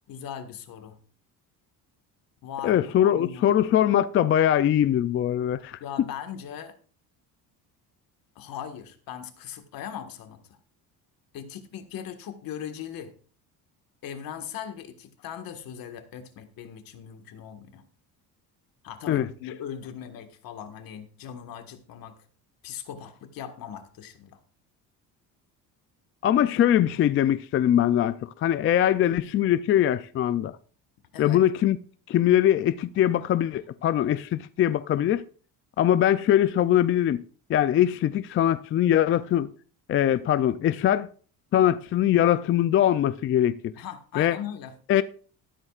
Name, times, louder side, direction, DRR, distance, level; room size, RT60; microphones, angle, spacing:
voice 1, 0.1-1.0 2.4-3.6 5.6-6.8 8.3-10.4 11.3-13.1 14.0-17.8 18.8-22.2 22.6-24.4 31.1-31.4 43.8-44.7, left 9 dB, 60° left, 1.7 m, -39 dB
voice 2, 2.6-5.8 19.1-19.3 26.2-30.6 31.2-31.8 32.1-35.2 35.8-37.2 37.5-39.5 39.9-41.1 41.5-43.7 44.2-44.4 44.9-45.0, left 11 dB, 35° left, 0.4 m, -22 dB
13.5 x 12.5 x 2.4 m
cardioid pair, 150°, 38 cm